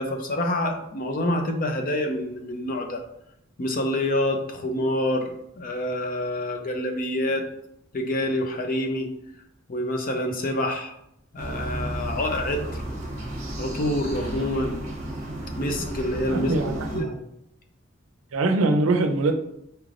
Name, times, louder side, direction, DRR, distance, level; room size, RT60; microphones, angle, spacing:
voice 1, 0.0-3.0 3.6-7.5 7.9-9.1 9.7-10.9 11.3-12.6 13.6-14.8 15.6-16.5 16.9-17.2, left 1 dB, 45° left, 5 dB, 0.5 m, -27 dB
sound 1, 11.4-17.0, right 1 dB, 40° right, 1.1 m, -33 dB
voice 2, 16.3-17.2 18.3-19.4, right 2 dB, 75° right, 6 dB, 0.5 m, -23 dB
4.5 x 3.2 x 2.5 m, 0.76 s
head